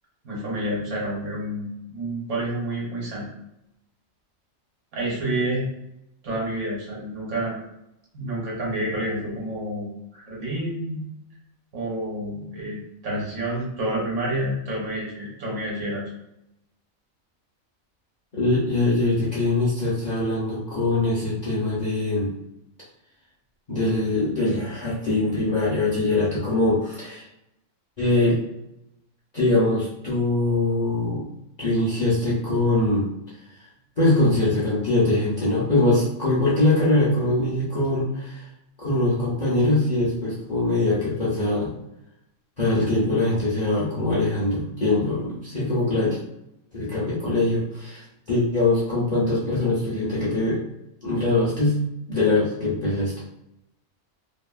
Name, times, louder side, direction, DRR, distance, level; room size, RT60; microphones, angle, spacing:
voice 1, 0.2-3.3 4.9-5.7 6.2-7.6 8.1-11.0 11.7-16.0, right 1 dB, 60° right, -5 dB, 1.2 m, -29 dB
voice 2, 18.3-22.3 23.7-27.2 28.0-28.4 29.3-31.2 31.6-33.1 34.0-38.4 38.8-41.7 42.6-46.2 46.7-50.6 51.0-51.8 52.1-53.1, left 2 dB, 40° left, -8 dB, 0.6 m, -22 dB
2.8 x 2.4 x 2.3 m, 0.86 s
omnidirectional pair, 1.4 m